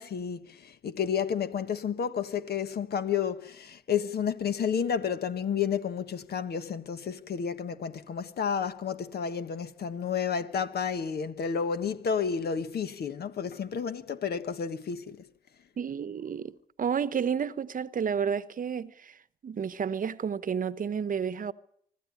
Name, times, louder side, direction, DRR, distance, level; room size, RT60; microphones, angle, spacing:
voice 1, 0.0-15.3, left 7 dB, 55° left, 1.4 m, -31 dB
voice 2, 15.8-21.5, right 7 dB, 45° right, 1.1 m, -31 dB
25.0 x 13.0 x 9.6 m
hypercardioid pair, 55°, 20 cm